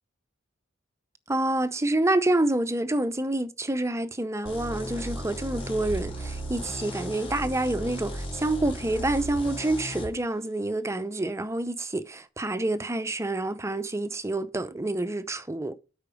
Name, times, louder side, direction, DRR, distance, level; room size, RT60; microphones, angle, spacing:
voice 1, 1.3-15.8, right 2 dB, 15° right, 0.6 m, -28 dB
sound 1, 4.4-10.1, equal, 30° left, 5.1 m, -35 dB
8.7 x 5.8 x 4.9 m
head